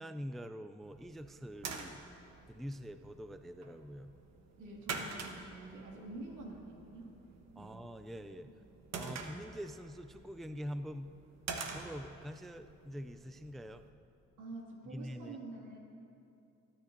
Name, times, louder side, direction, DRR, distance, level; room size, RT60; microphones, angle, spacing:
voice 1, 0.0-2.0 2.5-4.1 7.6-8.5 8.9-11.1 11.6-13.9 14.9-15.4, equal, ahead, 9 dB, 0.3 m, -45 dB
sound 1, 0.8-13.9, right 4 dB, 60° right, 1.3 m, -47 dB
voice 2, 4.6-7.2 7.6-7.8 14.4-15.8, right 2 dB, 90° right, -1 dB, 2.3 m, -47 dB
24.5 x 10.0 x 2.7 m, 2.6 s
cardioid pair, 90°, 30 cm